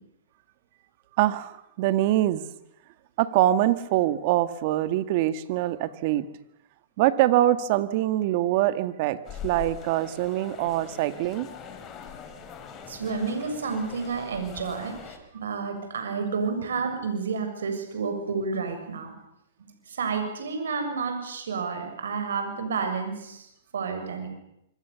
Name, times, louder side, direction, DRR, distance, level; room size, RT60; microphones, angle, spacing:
voice 1, 1.2-2.4 3.2-6.3 7.0-9.2 9.4-11.5, right 14 dB, 50° right, 12 dB, 1.9 m, -24 dB
sound 1, 9.2-15.2, left 7 dB, 25° left, 4.3 m, -42 dB
voice 2, 12.9-19.1 19.6-24.3, right 5 dB, 85° right, 5 dB, 7.1 m, -30 dB
26.0 x 25.0 x 7.1 m, 0.80 s
hypercardioid pair, 140°, 0 cm